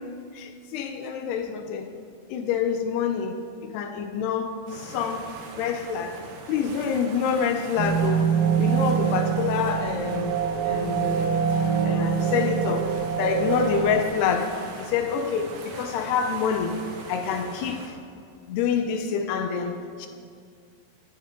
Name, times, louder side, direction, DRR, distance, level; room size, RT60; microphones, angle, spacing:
voice 1, 0.3-1.9 2.3-5.3 5.6-6.2 6.5-10.4 10.7-11.4 11.8-12.9 13.2-16.8 17.1-17.9 18.5-20.1, left 7 dB, 85° left, 7 dB, 2.8 m, -27 dB
sound 1, 4.7-17.9, right 3 dB, 85° right, 3.5 m, -41 dB
sound 2, 7.8-14.0, right 7 dB, 65° right, 2.4 m, -24 dB
18.0 x 11.5 x 3.8 m, 2.2 s
omnidirectional pair, 4.6 m